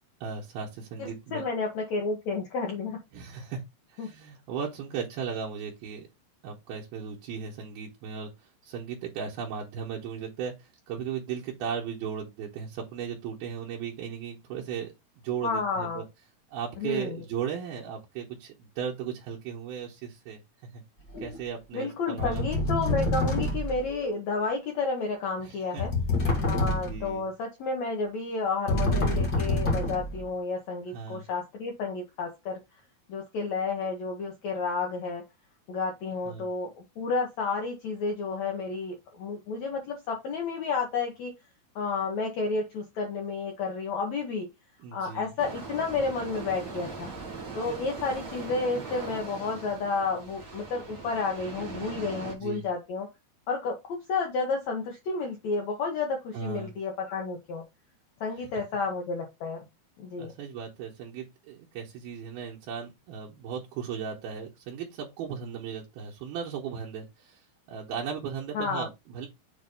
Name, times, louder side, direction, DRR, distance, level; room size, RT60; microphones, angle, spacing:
voice 1, 0.2-1.4 3.1-3.6 3.9-6.1 6.4-14.9 15.2-16.0 16.5-20.4 20.7-20.8 21.2-22.5 25.4-25.8 26.7-27.3 30.9-31.2 36.3-36.4 44.8-45.3 52.2-52.7 56.3-56.7 60.2-69.3, right 7 dB, 75° right, 2.8 m, -36 dB
voice 2, 1.0-3.0 4.0-4.1 15.4-16.0 16.8-17.2 21.7-25.9 26.4-32.6 33.1-35.2 35.7-41.3 41.7-44.5 44.9-47.1 47.5-53.1 53.5-57.6 58.2-59.6 60.0-60.3 68.5-68.8, left 4 dB, 80° left, 1.6 m, -31 dB
sound 1, 21.1-21.4 22.2-23.9 25.8-27.1 28.7-30.2, left 1 dB, 45° left, 1.2 m, -27 dB
sound 2, 45.4-52.3, right 4 dB, 50° right, 1.2 m, -40 dB
7.4 x 2.6 x 5.2 m
omnidirectional pair, 4.7 m